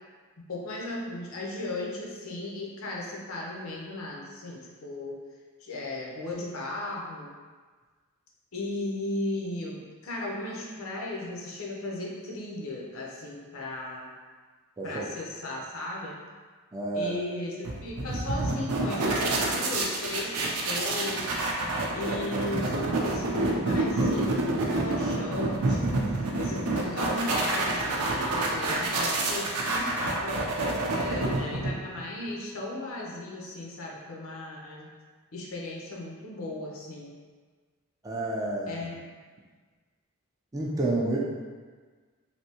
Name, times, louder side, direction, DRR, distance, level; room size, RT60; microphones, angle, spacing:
voice 1, 0.5-5.2 5.6-7.3 8.5-14.1 14.8-16.2 16.9-21.3 21.9-26.0 26.4-30.4 30.9-34.9 35.3-37.1 38.7-39.1, left 2 dB, 65° left, -2 dB, 0.6 m, -36 dB
voice 2, 16.7-17.2 38.0-38.8 40.5-41.2, right 2 dB, 15° right, -4 dB, 0.3 m, -29 dB
sound 1, 17.6-32.0, right 2 dB, 90° right, 0.5 m, -28 dB
3.3 x 2.7 x 2.8 m, 1.5 s
head